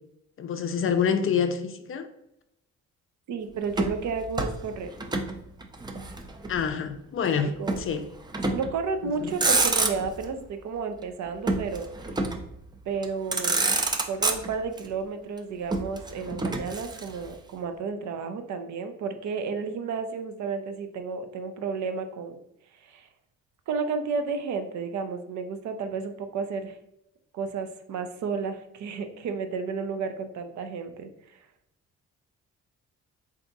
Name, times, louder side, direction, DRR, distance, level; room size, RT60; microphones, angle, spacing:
voice 1, 0.4-2.1 6.5-7.5 7.8-8.0 9.0-9.4, left 7 dB, 45° left, 0.4 m, -27 dB
voice 2, 3.3-4.9 7.4-7.8 8.4-11.9 12.9-13.8 14.1-22.4 22.8-23.1 23.7-26.8 27.3-31.1, right 5 dB, 70° right, 0.6 m, -32 dB
Motor vehicle (road), 3.7-5.3 5.6-6.7 7.7-7.9 8.3-8.8 9.2-10.3 11.5-12.5 13.0-13.1 13.3-14.8 15.7-17.3, right 2 dB, 15° right, 0.4 m, -27 dB
3.4 x 2.7 x 3.9 m
cardioid pair, 90°, 30 cm